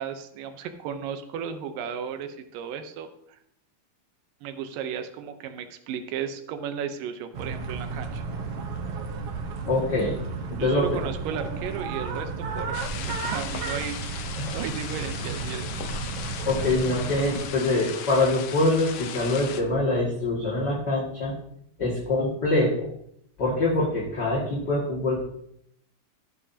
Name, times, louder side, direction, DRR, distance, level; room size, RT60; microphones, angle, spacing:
voice 1, 0.0-3.4 4.4-8.2 10.6-15.7, right 8 dB, 90° right, 8 dB, 2.5 m, -35 dB
sound 1, 7.3-17.5, right 4 dB, 60° right, 1.7 m, -33 dB
voice 2, 9.7-10.1 10.5-11.0 14.4-14.5 16.4-21.3 21.8-22.9 23.4-25.2, left 2 dB, 35° left, -5 dB, 2.3 m, -24 dB
sound 2, 12.7-19.6, left 8 dB, 85° left, 1.3 m, -37 dB
16.0 x 7.8 x 2.8 m, 0.72 s
omnidirectional pair, 3.8 m